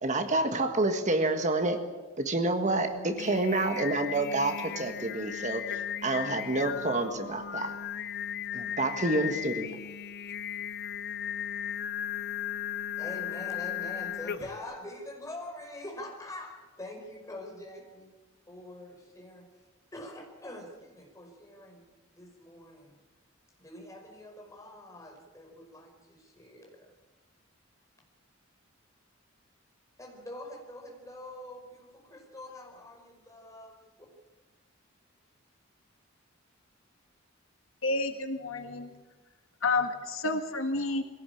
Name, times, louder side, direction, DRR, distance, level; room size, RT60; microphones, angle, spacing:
voice 1, 0.0-1.8 2.2-7.7 8.5-9.8, right 2 dB, 35° right, 6 dB, 1.7 m, -28 dB
Singing, 2.9-14.7, left 9 dB, 55° left, 0.6 m, -36 dB
voice 2, 13.0-18.1 18.5-19.5 19.9-21.8 22.1-23.0 23.6-26.9 30.0-33.8, left 1 dB, 15° left, 1 dB, 5.4 m, -44 dB
voice 3, 37.8-38.9 39.6-41.0, left 3 dB, 75° left, 6 dB, 1.9 m, -30 dB
23.0 x 17.0 x 8.7 m, 1.2 s
head